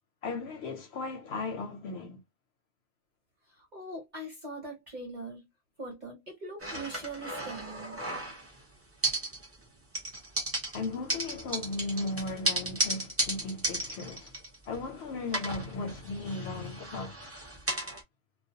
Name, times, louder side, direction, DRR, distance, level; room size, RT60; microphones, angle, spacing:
voice 1, 0.2-2.2 10.7-14.3 14.7-17.2, left 3 dB, 65° left, 0.7 m, -36 dB
voice 2, 3.5-5.5 5.8-8.0, right 2 dB, 40° right, 0.8 m, -41 dB
sound 1, 6.6-8.6 9.0-9.7 9.9-14.9 15.3-18.0, right 1 dB, 20° right, 0.4 m, -34 dB
2.3 x 2.1 x 2.7 m
omnidirectional pair, 1.4 m